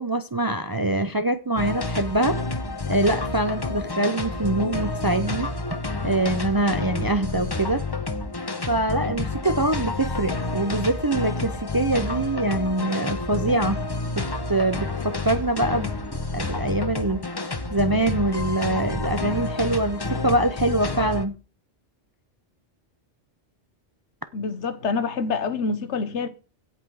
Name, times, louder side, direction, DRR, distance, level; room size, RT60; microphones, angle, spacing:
voice 1, 0.0-2.4 2.9-5.5 6.0-7.8 8.7-13.8 14.2-15.9 16.3-17.2 17.7-21.3, right 2 dB, 30° right, 0.4 m, -24 dB
sound 1, 1.6-21.3, left 3 dB, 20° left, 0.9 m, -29 dB
voice 2, 24.3-26.3, left 4 dB, 75° left, 1.3 m, -26 dB
16.5 x 5.7 x 4.7 m
omnidirectional pair, 1.2 m